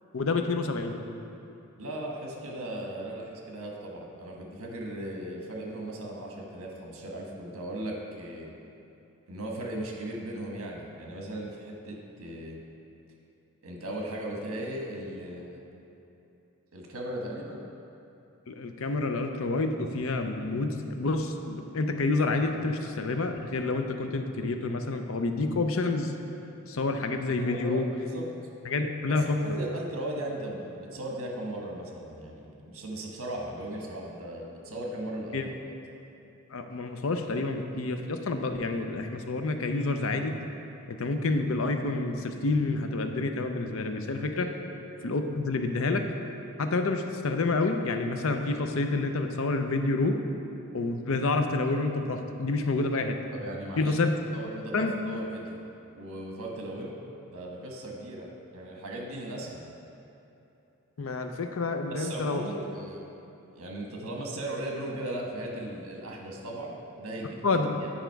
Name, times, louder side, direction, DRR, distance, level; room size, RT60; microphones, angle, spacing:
voice 1, 0.1-1.0 18.5-26.1 26.7-27.8 28.7-29.4 35.3-35.5 36.5-40.3 40.9-44.5 45.0-46.0 46.6-50.2 50.7-53.2 53.8-54.1 54.7-54.9 61.0-62.4 67.4-67.8, left 3 dB, 70° left, 6 dB, 0.6 m, -28 dB
voice 2, 1.8-8.5 9.3-12.6 13.6-15.6 16.7-17.6 27.4-27.8 28.1-28.2 29.1-35.6 44.3-44.6 53.3-53.9 54.3-55.6 55.9-57.0 57.3-59.6 61.9-63.0 63.5-67.9, right 1 dB, 75° right, -1 dB, 1.2 m, -37 dB
9.0 x 5.0 x 4.6 m, 2.9 s
head